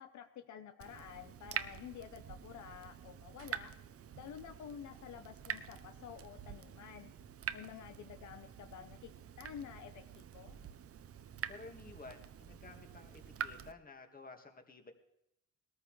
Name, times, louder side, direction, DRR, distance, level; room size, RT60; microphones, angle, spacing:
voice 1, 0.0-3.7 4.2-7.1 7.5-10.6, left 9 dB, 70° left, 8 dB, 0.8 m, -50 dB
Water tap faucet / Drip, 0.8-13.7, right 9 dB, 50° right, 0.7 m, -46 dB
voice 2, 11.5-14.9, left 3 dB, 30° left, 5 dB, 1.9 m, -53 dB
20.0 x 13.5 x 3.2 m, 0.79 s
cardioid pair, 90°, 30 cm